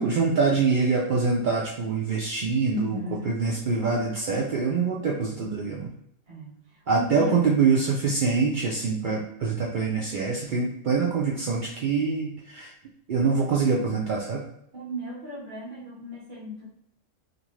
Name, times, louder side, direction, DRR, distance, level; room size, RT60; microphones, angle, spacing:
voice 1, 0.0-3.0 3.2-5.9 6.9-12.7 13.1-14.5, right 4 dB, 75° right, -4 dB, 0.4 m, -25 dB
voice 2, 2.7-3.4 6.3-7.5 14.7-16.7, left 1 dB, 50° right, -4 dB, 0.8 m, -37 dB
2.5 x 2.5 x 3.1 m, 0.73 s
omnidirectional pair, 1.4 m